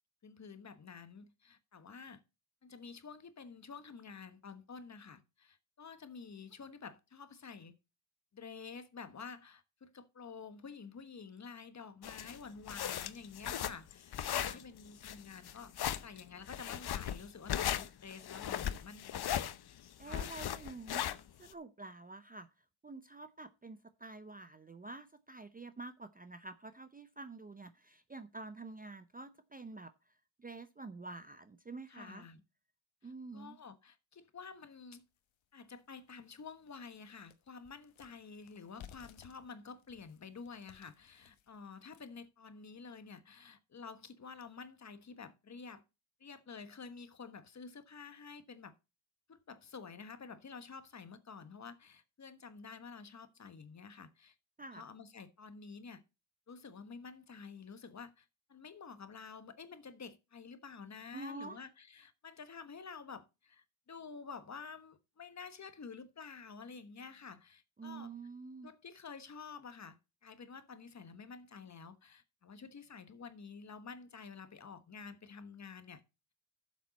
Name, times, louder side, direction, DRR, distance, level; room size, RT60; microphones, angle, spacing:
voice 1, 0.2-2.2 2.6-7.7 8.3-15.7 16.0-19.5 20.0-20.3 31.9-32.4 33.0-35.0 35.5-45.8 46.2-48.7 49.3-54.3 54.7-56.0 56.5-68.1 68.6-76.0, left 5 dB, 35° left, 1.2 m, -50 dB
sound 1, 12.0-21.5, left 10 dB, 55° left, 0.8 m, -37 dB
voice 2, 14.3-14.6 20.0-21.0 21.4-22.5 22.8-29.9 30.4-32.2 33.0-33.6 54.6-54.8 61.1-61.6 67.8-68.7, right 3 dB, 20° right, 0.5 m, -48 dB
sound 2, 35.2-35.3 35.8-35.9 36.2-42.3, left 9 dB, 75° left, 1.2 m, -59 dB
11.5 x 7.4 x 4.1 m
cardioid pair, 125°, 47 cm